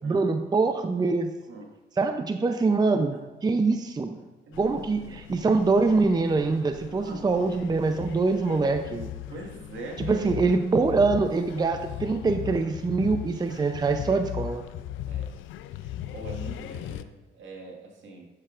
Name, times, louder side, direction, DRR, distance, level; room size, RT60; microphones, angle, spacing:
voice 1, 0.0-1.3 2.0-4.2 4.6-9.1 10.0-14.7, right 3 dB, 20° right, 7 dB, 0.5 m, -24 dB
sound 1, 4.5-17.0, left 11 dB, 80° left, 0.4 m, -38 dB
voice 2, 4.5-5.2 6.8-7.3 9.3-10.3 15.0-15.3 15.7-17.1 17.3-18.3, right 2 dB, 75° right, 0 dB, 1.7 m, -42 dB
10.5 x 6.7 x 2.5 m, 1.2 s
cardioid pair, 90°, 20 cm